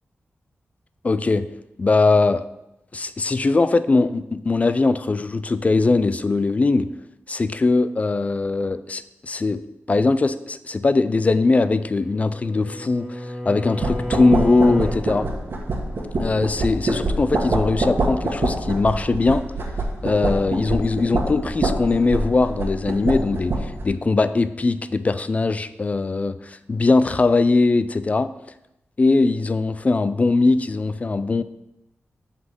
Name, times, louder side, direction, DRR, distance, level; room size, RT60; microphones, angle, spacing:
voice 1, 1.0-1.5 1.8-2.5 2.9-6.9 7.3-9.6 9.9-15.3 16.2-19.4 20.0-28.3 29.0-31.4, left 3 dB, 30° left, 13 dB, 0.3 m, -20 dB
Bowed string instrument, 11.9-15.0, left 1 dB, 10° left, 1.6 m, -31 dB
sound 1, 13.8-23.9, right 2 dB, 55° right, 1.4 m, -25 dB
7.9 x 4.1 x 6.7 m, 0.88 s
wide cardioid pair, 125°, 5 cm